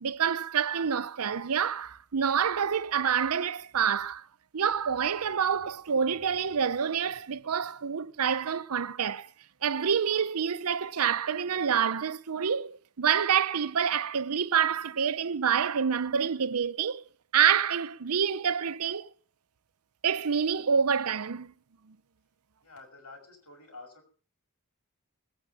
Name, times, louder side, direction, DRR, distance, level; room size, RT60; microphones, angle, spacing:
voice 1, 0.0-4.3 4.5-9.3 9.6-17.0 17.3-19.1 20.0-21.5 21.9-22.0, right 7 dB, 75° right, 0.7 m, -27 dB
voice 2, 22.6-24.1, left 3 dB, 90° left, 6.5 m, -49 dB
20.5 x 9.6 x 5.8 m
head